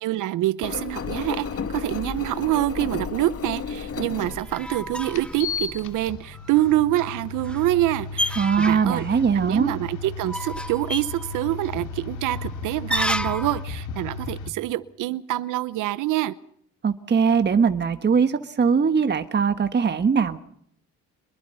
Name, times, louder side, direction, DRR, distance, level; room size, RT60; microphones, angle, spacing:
voice 1, 0.0-16.3, right 15 dB, 85° right, 15 dB, 0.8 m, -26 dB
Engine, 0.6-6.1, left 6 dB, 50° left, 2.2 m, -33 dB
sound 1, 3.9-13.6, left 1 dB, 5° left, 0.9 m, -33 dB
sound 2, 4.2-4.3 5.1-14.5, left 4 dB, 90° left, 2.3 m, -35 dB
voice 2, 8.4-9.7 16.8-20.4, right 6 dB, 35° right, 9 dB, 1.4 m, -21 dB
27.0 x 21.5 x 5.6 m, 0.67 s
cardioid pair, 90°, 30 cm